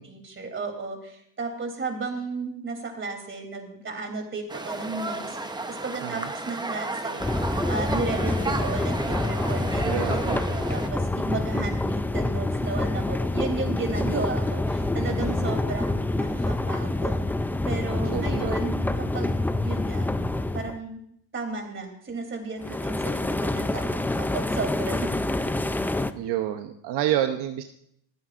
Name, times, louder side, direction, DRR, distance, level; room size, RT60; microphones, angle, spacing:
voice 1, 0.0-7.2 7.7-10.2 10.5-17.2 17.7-20.1 20.5-21.0 21.3-25.2, right 3 dB, 30° right, 4 dB, 3.1 m, -34 dB
sound 1, 4.5-10.9, right 2 dB, 10° right, 0.8 m, -32 dB
sound 2, 7.2-20.8 22.6-26.1, left 2 dB, 5° left, 0.3 m, -27 dB
voice 2, 9.9-10.4 18.1-18.6 26.1-27.6, right 11 dB, 75° right, 7 dB, 0.9 m, -28 dB
26.5 x 9.3 x 2.5 m, 0.71 s
cardioid pair, 115°, 41 cm